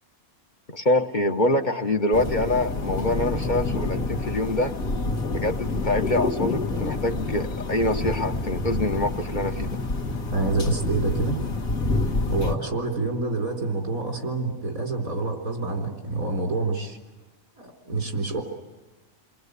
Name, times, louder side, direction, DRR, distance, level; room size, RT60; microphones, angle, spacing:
voice 1, 0.7-4.7 5.3-9.8, left 1 dB, 35° left, 5 dB, 1.0 m, -25 dB
sound 1, 2.1-12.6, left 2 dB, 80° left, 2.2 m, -28 dB
voice 2, 10.3-11.4 12.3-17.0 17.6-18.4, right 3 dB, 90° right, 2 dB, 4.3 m, -27 dB
29.0 x 20.5 x 8.2 m, 1.2 s
omnidirectional pair, 1.4 m